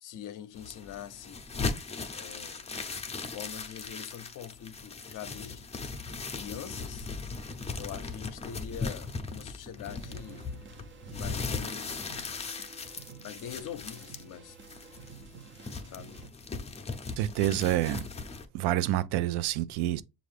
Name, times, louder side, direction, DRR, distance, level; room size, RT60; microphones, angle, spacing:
voice 1, 0.0-1.4 2.1-2.6 3.3-5.7 6.3-7.1 7.7-10.5 11.1-12.0 13.2-14.6 15.9-16.2, left 9 dB, 55° left, 0.6 m, -43 dB
sound 1, 0.5-18.4, left 4 dB, 15° left, 0.6 m, -38 dB
sound 2, 9.9-16.3, right 6 dB, 30° right, 0.5 m, -51 dB
voice 2, 17.2-18.0 18.5-20.0, right 13 dB, 85° right, 0.5 m, -27 dB
6.5 x 2.6 x 3.2 m
cardioid pair, 110°, 39 cm